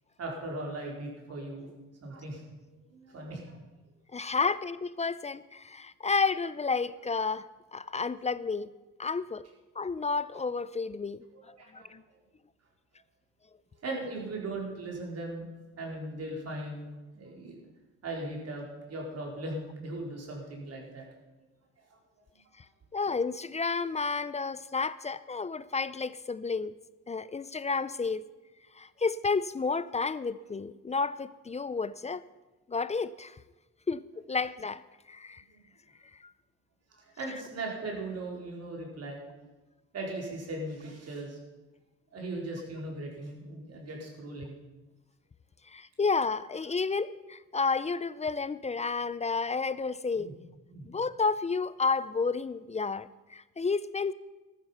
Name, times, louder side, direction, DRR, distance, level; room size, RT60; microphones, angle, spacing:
voice 1, 0.2-1.7 2.0-3.6 11.3-12.0 13.8-15.5 15.8-16.9 17.1-17.6 18.0-21.0 21.8-22.0 36.9-39.5 39.9-41.4 42.1-44.6 50.2-50.3 50.7-50.9, right 2 dB, 55° right, -1 dB, 4.4 m, -38 dB
voice 2, 4.1-7.5 7.7-8.7 9.0-9.5 9.8-12.0 22.6-22.7 22.9-26.7 27.1-28.3 28.7-32.3 32.7-33.4 33.9-34.0 34.3-34.8 35.1-35.4 45.7-50.3 50.8-54.1, left 4 dB, 20° left, 17 dB, 0.5 m, -31 dB
14.0 x 12.5 x 5.7 m, 1.1 s
cardioid pair, 90°, 30 cm